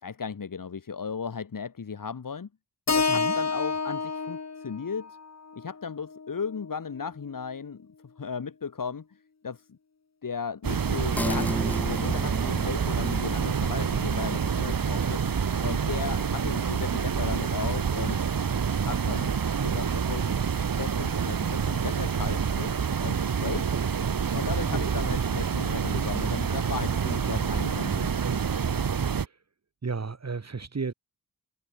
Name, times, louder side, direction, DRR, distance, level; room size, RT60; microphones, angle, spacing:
voice 1, 0.0-2.5 2.9-5.2 5.6-7.8 8.2-9.0 9.4-9.8 10.2-11.5 11.9-15.2 15.6-18.2 18.8-19.4 19.6-20.4 20.8-22.8 23.0-23.7 24.3-28.1, left 6 dB, 65° left, 2.5 m, -36 dB
Keyboard (musical), 2.9-7.1, left 4 dB, 45° left, 3.1 m, -30 dB
sound 1, 10.6-29.3, right 6 dB, 70° right, 1.9 m, -27 dB
sound 2, 11.2-18.2 18.6-18.7, left 1 dB, 5° left, 0.8 m, -37 dB
voice 2, 19.5-19.9 23.7-23.8 24.6-24.9 28.2-28.6 28.9-29.4 29.8-30.9, right 4 dB, 45° right, 2.7 m, -35 dB
wide cardioid pair, 115°, 36 cm